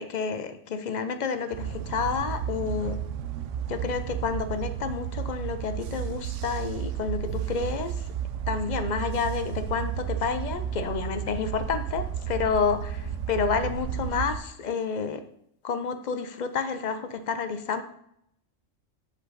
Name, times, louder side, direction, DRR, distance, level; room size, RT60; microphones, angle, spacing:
voice 1, 0.0-3.0 3.7-8.1 8.5-15.2 15.6-17.8, left 5 dB, 55° left, 9 dB, 0.5 m, -29 dB
sound 1, 1.5-14.4, right 9 dB, 75° right, 0.9 m, -33 dB
8.1 x 5.2 x 3.9 m, 0.73 s
omnidirectional pair, 1.3 m